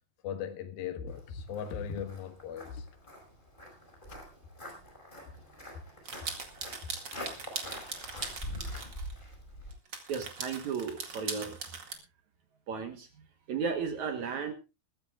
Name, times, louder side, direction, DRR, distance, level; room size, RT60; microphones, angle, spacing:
voice 1, 0.2-2.9 4.1-4.2 5.2-5.4, left 7 dB, 70° left, 3.3 m, -38 dB
Walk footsteps, 1.1-9.7, equal, 10° left, 5.2 m, -45 dB
sound 1, 6.0-9.1 9.7-11.9, right 5 dB, 35° right, 2.0 m, -40 dB
voice 2, 10.1-11.6 12.7-13.1 13.5-14.5, right 6 dB, 60° right, 2.1 m, -34 dB
21.0 x 14.5 x 2.4 m
omnidirectional pair, 4.5 m